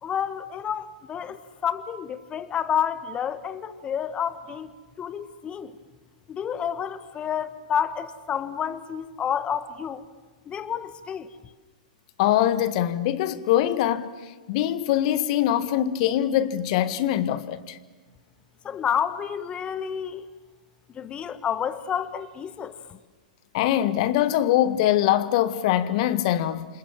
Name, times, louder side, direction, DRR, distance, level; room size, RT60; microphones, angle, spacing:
voice 1, 0.0-4.7 5.0-5.8 6.3-10.1 10.5-11.3 18.6-20.2 20.9-23.0, left 8 dB, 25° left, 1.5 m, -29 dB
voice 2, 12.2-14.1 14.5-17.8 23.5-26.7, left 12 dB, 55° left, 1.7 m, -23 dB
29.0 x 26.5 x 7.6 m
hypercardioid pair, 110°, 4 cm